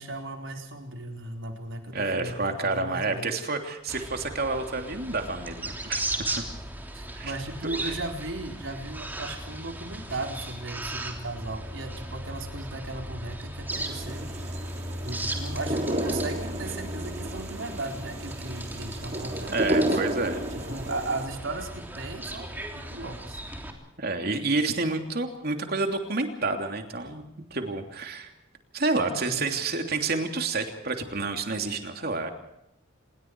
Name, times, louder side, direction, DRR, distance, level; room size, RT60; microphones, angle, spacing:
voice 1, 0.0-3.3 6.9-14.3 15.0-19.9 20.7-22.5 22.7-23.4 29.0-29.4, right 2 dB, 70° right, 3 dB, 4.3 m, -36 dB
voice 2, 1.9-6.4 7.1-7.3 7.6-8.0 19.5-20.4 24.0-27.2 27.5-28.3 28.7-32.3, right 3 dB, 50° right, 5 dB, 3.1 m, -29 dB
sound 1, 3.9-23.7, right 1 dB, 10° right, 3.3 m, -36 dB
sound 2, 13.7-21.2, right 1 dB, 35° right, 2.9 m, -32 dB
27.0 x 22.0 x 4.8 m, 0.83 s
head